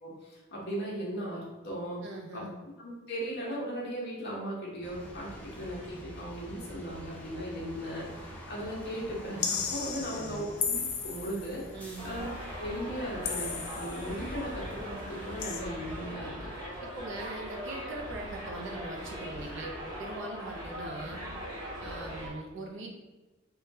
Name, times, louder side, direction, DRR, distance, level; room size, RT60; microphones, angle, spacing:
voice 1, 0.0-2.0 2.3-2.5 2.8-8.1 8.5-11.6 12.0-16.5, equal, 55° left, -4 dB, 0.9 m, -37 dB
voice 2, 2.0-2.5 9.9-10.4 11.7-12.0 16.8-21.2 21.8-22.9, right 2 dB, 65° right, 0 dB, 0.6 m, -41 dB
sound 1, 4.8-16.2, equal, 10° left, 0.5 m, -47 dB
sound 2, 9.4-11.5 13.2-14.1 15.4-15.6, left 6 dB, 85° left, 0.4 m, -34 dB
Subway metro underground, 12.0-22.3, equal, 20° right, 1.1 m, -40 dB
3.6 x 2.3 x 2.7 m, 1.1 s
head